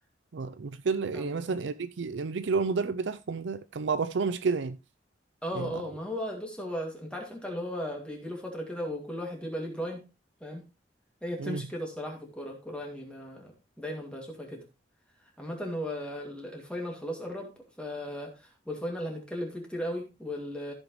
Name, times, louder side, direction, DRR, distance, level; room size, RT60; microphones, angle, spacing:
voice 1, 0.3-4.8 5.5-5.7 11.4-11.6, right 4 dB, 75° right, 0.5 m, -30 dB
voice 2, 1.1-1.6 5.4-10.0 10.4-10.7 11.2-14.6 15.4-17.5 17.8-20.7, equal, 5° left, 2.3 m, -36 dB
14.5 x 6.3 x 3.1 m
head